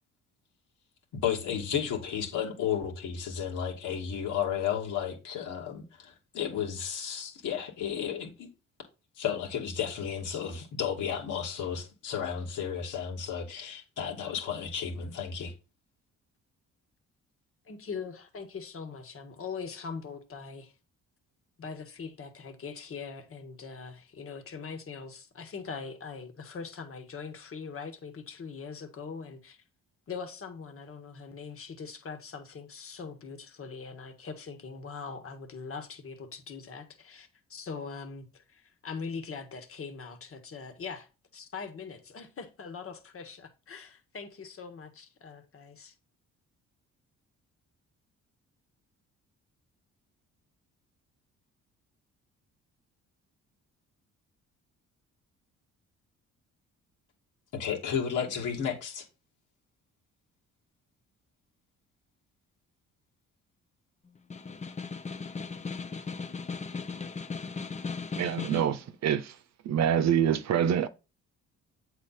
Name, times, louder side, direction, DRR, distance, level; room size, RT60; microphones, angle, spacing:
voice 1, 1.1-8.5 9.2-15.5 57.5-59.0, left 8 dB, 80° left, 2.4 m, -33 dB
voice 2, 17.6-20.7 21.6-29.6 30.1-45.9, left 5 dB, 45° left, 1.6 m, -42 dB
Snare drum, 64.2-68.8, left 4 dB, 25° left, 0.7 m, -37 dB
voice 3, 68.1-69.3 69.6-70.9, right 9 dB, 60° right, 0.8 m, -26 dB
7.9 x 4.3 x 4.2 m
cardioid pair, 90°, 30 cm